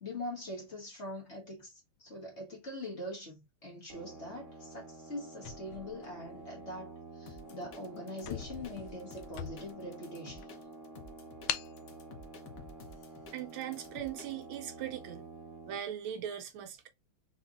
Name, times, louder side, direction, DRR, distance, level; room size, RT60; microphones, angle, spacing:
voice 1, 0.0-10.5, left 1 dB, 35° left, 1.5 m, -43 dB
sound 1, 3.9-15.8, right 3 dB, 40° right, 0.7 m, -50 dB
sound 2, 5.4-6.7 7.3-7.5 7.8-7.9 8.2-9.9 10.4-10.5 11.5-11.8, left 10 dB, 80° left, 1.3 m, -41 dB
sound 3, 7.3-14.6, left 4 dB, 55° left, 1.0 m, -52 dB
voice 2, 13.3-15.3 15.7-16.9, right 10 dB, 75° right, 1.5 m, -39 dB
3.9 x 3.6 x 2.5 m
omnidirectional pair, 2.3 m